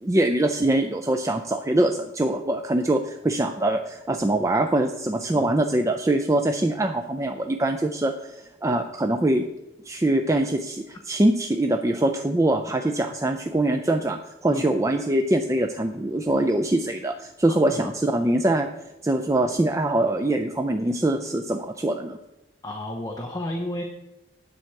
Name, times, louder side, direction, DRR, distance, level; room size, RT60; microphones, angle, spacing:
voice 1, 0.0-9.4 9.9-18.7 19.0-22.2, right 1 dB, 15° right, 4 dB, 0.4 m, -23 dB
voice 2, 22.6-23.8, left 1 dB, 20° left, 2 dB, 0.8 m, -32 dB
10.0 x 7.7 x 4.6 m, 0.93 s
head